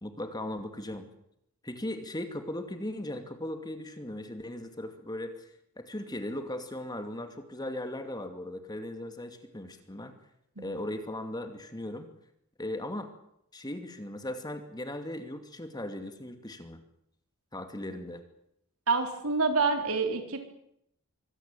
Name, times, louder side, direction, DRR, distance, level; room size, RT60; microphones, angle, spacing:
voice 1, 0.0-1.1 1.6-10.1 10.6-12.1 12.6-13.1 13.5-16.8 17.5-18.2, left 1 dB, 20° left, 8 dB, 2.5 m, -38 dB
voice 2, 18.9-20.4, right 4 dB, 70° right, 6 dB, 4.1 m, -27 dB
24.5 x 17.0 x 9.2 m, 0.75 s
head